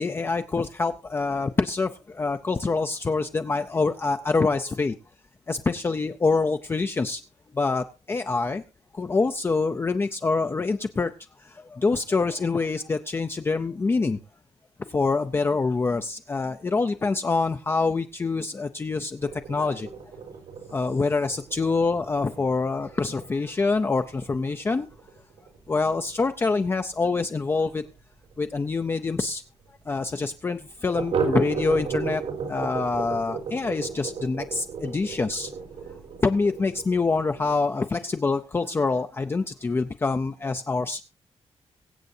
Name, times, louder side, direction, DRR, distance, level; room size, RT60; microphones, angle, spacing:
voice 1, 0.0-5.0 5.5-7.2 7.5-8.6 8.9-11.1 11.4-14.2 14.8-19.9 20.7-24.9 25.7-27.8 28.4-29.4 29.9-32.2 32.5-35.5 36.2-41.0, left 4 dB, 20° left, 7 dB, 0.5 m, -25 dB
sound 1, 19.2-28.5 28.8-28.9 29.2-29.3 29.7-29.8 30.9-37.7, right 5 dB, 85° right, 4.0 m, -35 dB
23.5 x 7.9 x 2.7 m, 0.30 s
wide cardioid pair, 180°, 11 cm